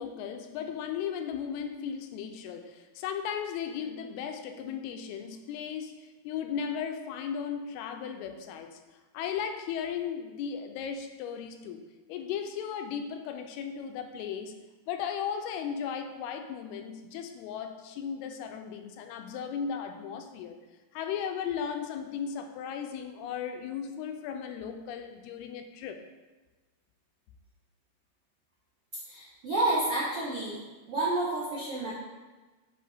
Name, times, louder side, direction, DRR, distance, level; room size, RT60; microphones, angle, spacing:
voice 1, 0.0-8.8 9.1-14.5 14.9-20.6 20.9-26.0, left 7 dB, 90° left, 6 dB, 2.5 m, -36 dB
voice 2, 29.0-30.6 30.9-31.9, right 2 dB, 85° right, -6 dB, 1.3 m, -29 dB
10.0 x 3.8 x 3.4 m, 1.2 s
omnidirectional pair, 4.5 m